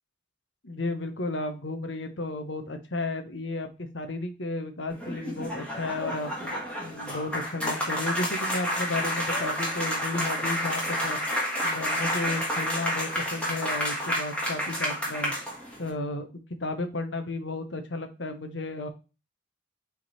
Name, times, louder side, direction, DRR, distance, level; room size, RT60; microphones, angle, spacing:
voice 1, 0.6-6.5 6.8-11.2 11.6-15.3 15.8-18.9, left 2 dB, 70° left, 8 dB, 1.1 m, -33 dB
sound 1, 4.9-15.9, equal, 5° left, 2.1 m, -30 dB
5.9 x 3.8 x 4.2 m, 0.31 s
head